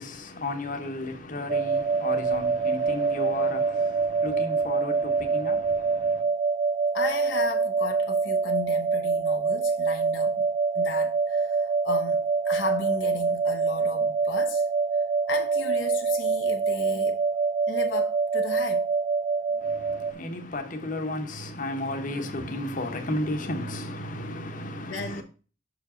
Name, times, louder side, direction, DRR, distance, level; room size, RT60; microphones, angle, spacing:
voice 1, 0.0-6.2 19.6-25.2, left 1 dB, 40° left, 1.1 m, -33 dB
sound 1, 1.5-20.1, right 4 dB, 35° right, 0.5 m, -25 dB
voice 2, 6.9-10.4 10.7-14.6 15.3-17.2 17.7-18.9 24.9-25.2, left 3 dB, 65° left, 0.9 m, -34 dB
6.3 x 4.9 x 5.0 m
head